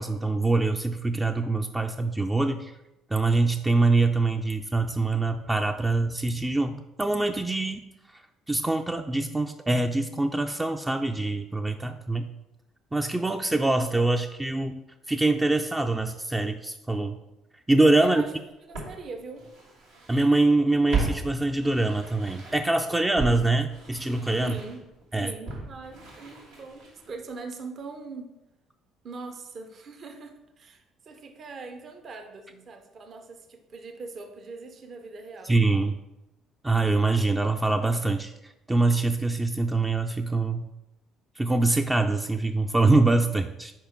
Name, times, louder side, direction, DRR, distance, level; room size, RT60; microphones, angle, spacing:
voice 1, 0.0-2.7 3.1-7.8 8.5-12.3 12.9-14.8 15.1-17.2 17.7-18.2 20.1-24.5 25.1-25.3 35.5-35.9 36.6-38.3 38.7-40.7 41.4-43.7, right 2 dB, 15° right, 5 dB, 0.4 m, -24 dB
voice 2, 18.0-18.3 18.6-19.4 24.4-24.8 25.2-26.8 27.1-28.3 29.0-35.6, right 4 dB, 45° right, 5 dB, 0.7 m, -41 dB
Walk footsteps, 18.7-20.2 20.5-22.8 23.2-27.2 27.5-27.6, right 4 dB, 80° right, 1.4 m, -35 dB
4.8 x 4.6 x 4.5 m, 0.93 s
hypercardioid pair, 55°, 0 cm